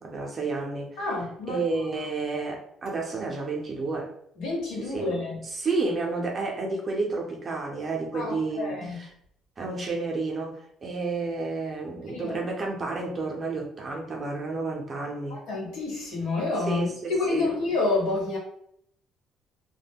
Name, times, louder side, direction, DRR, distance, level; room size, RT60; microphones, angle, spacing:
voice 1, 0.0-1.1 1.5-4.1 4.8-5.2 5.4-9.1 9.6-15.4 16.6-17.5, right 3 dB, 25° right, 0 dB, 0.5 m, -31 dB
voice 2, 1.0-1.6 4.4-5.4 8.1-9.0 12.1-12.4 15.3-18.4, left 3 dB, 90° left, -3 dB, 1.1 m, -29 dB
2.2 x 2.1 x 3.5 m, 0.70 s
cardioid pair, 170°, 0 cm